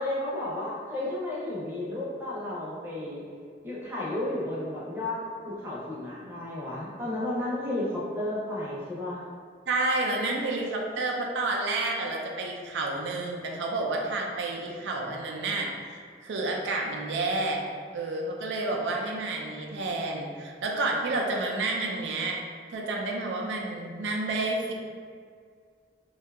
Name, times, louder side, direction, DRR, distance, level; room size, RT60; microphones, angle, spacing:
voice 1, 0.0-3.2 3.6-5.2 5.5-9.2, left 1 dB, 10° right, -7 dB, 0.6 m, -32 dB
voice 2, 9.7-17.6 17.9-22.4 22.7-24.7, right 2 dB, 85° right, 0 dB, 0.4 m, -30 dB
2.6 x 2.3 x 3.4 m, 2.1 s
head